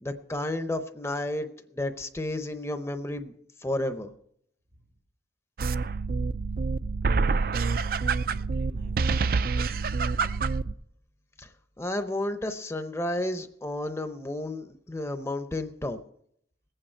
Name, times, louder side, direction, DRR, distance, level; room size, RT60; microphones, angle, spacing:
voice 1, 0.0-3.3 3.6-4.1 11.4-11.5 11.8-16.0, left 1 dB, 15° left, 9 dB, 0.7 m, -32 dB
sound 1, 5.6-10.7, right 4 dB, 55° right, 0.4 m, -27 dB
voice 2, 7.1-10.3, right 2 dB, 85° right, 2 dB, 3.0 m, -49 dB
20.5 x 8.9 x 4.5 m, 0.71 s
head